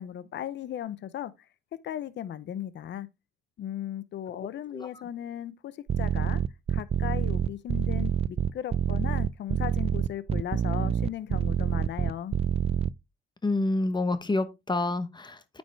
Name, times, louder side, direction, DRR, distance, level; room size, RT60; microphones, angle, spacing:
voice 1, 0.0-1.3 1.8-3.1 3.6-6.4 6.7-12.3, left 11 dB, 65° left, 0.7 m, -36 dB
sound 1, 5.9-12.9, right 9 dB, 30° right, 0.3 m, -26 dB
voice 2, 13.4-15.6, left 2 dB, 20° left, 1.0 m, -28 dB
9.3 x 5.3 x 3.3 m
cardioid pair, 90°, 20 cm